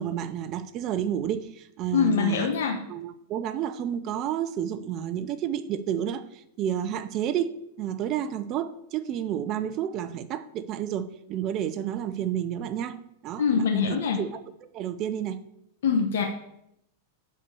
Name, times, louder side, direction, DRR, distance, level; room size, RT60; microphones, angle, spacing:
voice 1, 0.0-2.5 2.9-14.4 14.7-15.4, right 10 dB, 35° right, 0.6 m, -31 dB
voice 2, 1.9-2.8 13.4-14.2 15.8-16.2, left 6 dB, 80° left, 1.1 m, -23 dB
9.9 x 4.4 x 6.9 m
supercardioid pair, 150°, 0 cm